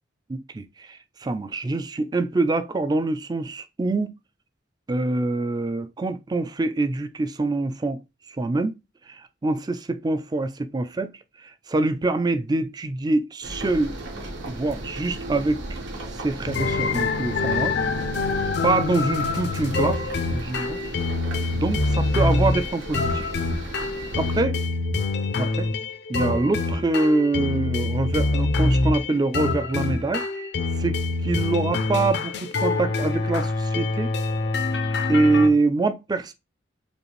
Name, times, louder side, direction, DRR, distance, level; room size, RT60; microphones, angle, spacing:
voice 1, 0.3-4.1 4.9-8.0 8.4-8.8 9.1-11.1 11.4-13.9 14.5-15.8 16.2-17.7 18.6-20.0 20.3-20.8 21.5-23.3 24.2-24.6 25.4-25.7 26.1-30.2 30.8-31.0 31.2-34.1 35.1-36.3, right 2 dB, 20° right, 0.4 m, -25 dB
sound 1, 13.4-24.4, right 1 dB, 75° right, 1.3 m, -35 dB
sound 2, 16.5-35.5, left 3 dB, 60° left, 0.5 m, -25 dB
5.2 x 2.5 x 3.1 m
head